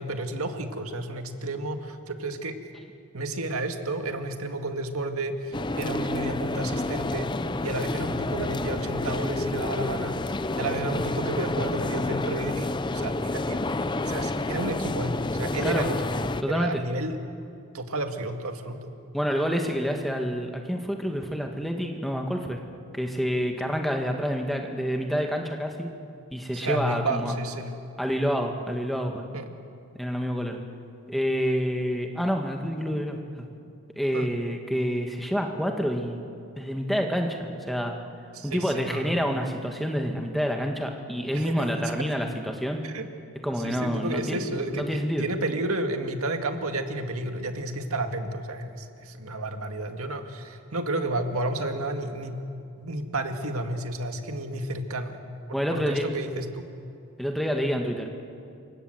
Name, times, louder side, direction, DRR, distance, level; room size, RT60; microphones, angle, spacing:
voice 1, 0.0-2.6 3.1-7.3 7.6-16.0 16.5-17.2 17.7-18.9 26.5-27.7 29.3-29.6 34.1-34.3 38.3-39.2 41.3-42.1 42.8-43.1 43.6-52.4 52.8-55.1 55.5-56.7, right 2 dB, 80° right, 6 dB, 2.0 m, -31 dB
sound 1, 5.5-16.4, left 2 dB, 20° left, 0.5 m, -29 dB
voice 2, 16.4-16.8 19.1-22.6 22.9-25.9 26.3-27.3 28.0-29.2 29.9-30.6 31.1-33.4 34.0-36.2 36.6-37.9 38.4-42.8 43.4-45.2 55.5-56.1 57.2-58.1, equal, ahead, 3 dB, 1.6 m, -28 dB
28.5 x 25.0 x 7.9 m, 2.5 s
head